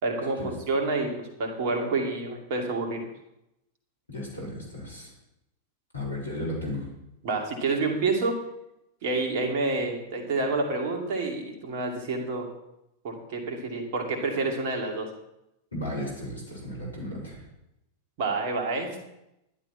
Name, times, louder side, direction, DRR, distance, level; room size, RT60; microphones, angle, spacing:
voice 1, 0.0-3.1 7.2-8.4 9.0-12.5 13.0-15.1 18.2-19.0, right 3 dB, 50° right, 2 dB, 2.5 m, -28 dB
voice 2, 4.1-5.1 5.9-6.9 15.7-17.4, left 1 dB, 80° left, -4 dB, 5.1 m, -34 dB
11.5 x 11.5 x 4.4 m, 0.87 s
figure-of-eight pair, 90°, 0 cm